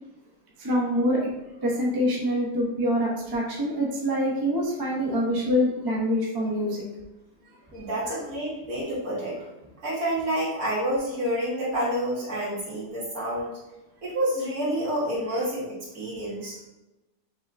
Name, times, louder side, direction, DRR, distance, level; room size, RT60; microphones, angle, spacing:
voice 1, 0.6-1.3 1.6-6.8, equal, 30° right, -3 dB, 0.4 m, -25 dB
voice 2, 7.7-9.4 9.8-13.6 14.0-16.6, right 1 dB, 60° right, -7 dB, 2.0 m, -28 dB
5.5 x 3.1 x 2.6 m, 1.0 s
omnidirectional pair, 1.8 m